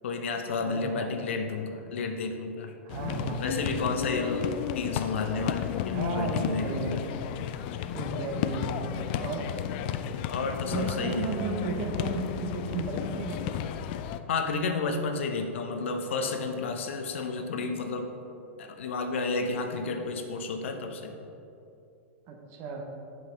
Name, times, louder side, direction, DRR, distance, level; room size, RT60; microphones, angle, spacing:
voice 1, 0.0-2.7 3.4-7.0 10.3-11.3 14.3-18.1 18.6-21.1, left 4 dB, 65° left, 5 dB, 0.7 m, -31 dB
voice 2, 0.6-1.2 2.8-4.4 5.9-7.2 7.9-9.5 10.7-13.7 22.3-22.8, right 4 dB, 40° right, 3 dB, 1.0 m, -35 dB
sound 1, 2.9-14.2, left 10 dB, 50° left, 0.4 m, -33 dB
7.7 x 5.7 x 3.9 m, 2.7 s
figure-of-eight pair, 100°, 7 cm